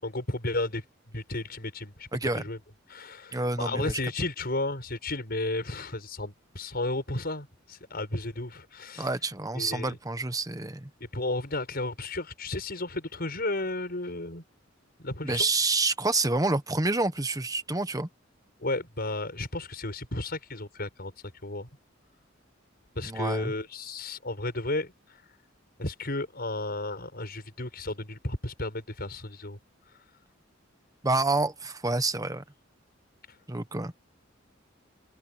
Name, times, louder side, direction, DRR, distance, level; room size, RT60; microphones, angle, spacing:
voice 1, 0.0-2.6 2.9-9.1 9.5-10.0 11.0-14.4 15.0-15.5 18.6-21.1 21.4-21.7 22.9-24.9 25.8-29.6, left 2 dB, 50° left, 6.7 m, -33 dB
voice 2, 2.1-2.4 3.3-4.0 9.0-10.9 15.2-18.1 23.0-23.5 31.0-32.4 33.5-33.9, right 3 dB, 20° right, 1.3 m, -28 dB
open air
head